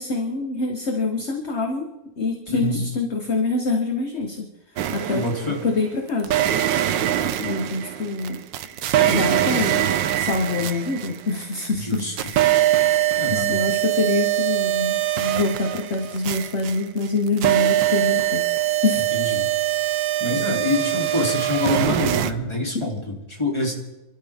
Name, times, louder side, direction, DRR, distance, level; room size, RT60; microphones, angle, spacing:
voice 1, 0.0-1.9 2.2-4.5 4.9-5.3 5.6-6.4 7.4-8.4 9.0-12.7 13.3-19.0, left 3 dB, 40° left, 3 dB, 1.5 m, -25 dB
voice 2, 2.5-2.8 5.1-5.6 11.8-12.3 13.2-13.6 19.1-19.5 20.2-23.7, left 2 dB, 15° left, -1 dB, 3.4 m, -26 dB
sound 1, 4.8-5.7 6.2-11.7 11.9-22.3, right 13 dB, 80° right, 1.5 m, -22 dB
27.5 x 13.0 x 3.6 m, 0.98 s
omnidirectional pair, 2.0 m